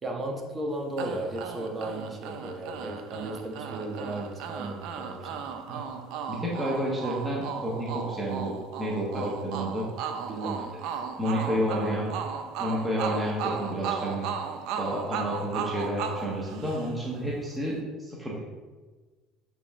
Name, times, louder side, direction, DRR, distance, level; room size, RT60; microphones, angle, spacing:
voice 1, 0.0-5.4 10.2-10.6 11.5-12.0, right 1 dB, 30° right, 0 dB, 1.2 m, -35 dB
sound 1, 1.0-17.2, right 7 dB, 70° right, 0.6 m, -36 dB
voice 2, 6.3-9.8 11.2-12.2 12.6-14.3 14.7-18.4, equal, 5° right, -5 dB, 1.3 m, -30 dB
8.1 x 3.4 x 3.7 m, 1.3 s
supercardioid pair, 105°, 0 cm